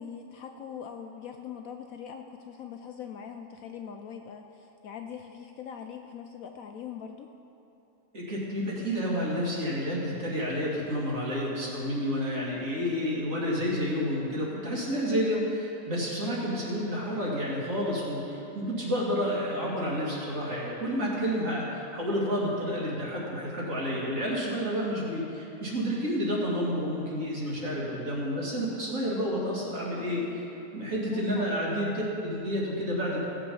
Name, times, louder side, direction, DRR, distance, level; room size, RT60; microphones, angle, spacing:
voice 1, 0.0-7.3 16.4-16.8 29.9-30.4 31.1-31.8, left 7 dB, 70° left, 5 dB, 0.9 m, -42 dB
voice 2, 8.1-30.2 30.7-33.2, equal, 50° right, -5 dB, 2.7 m, -30 dB
16.5 x 7.1 x 5.5 m, 2.9 s
omnidirectional pair, 1.7 m